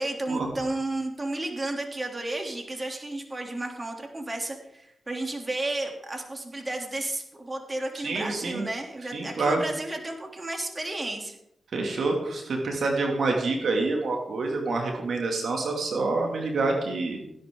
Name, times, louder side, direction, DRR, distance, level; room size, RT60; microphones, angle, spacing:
voice 1, 0.0-11.4, right 2 dB, 30° right, 2 dB, 3.1 m, -32 dB
voice 2, 8.0-8.7 9.1-9.6 11.7-17.2, right 3 dB, 70° right, 1 dB, 2.6 m, -27 dB
16.5 x 11.0 x 3.9 m, 0.77 s
supercardioid pair, 45°, 0 cm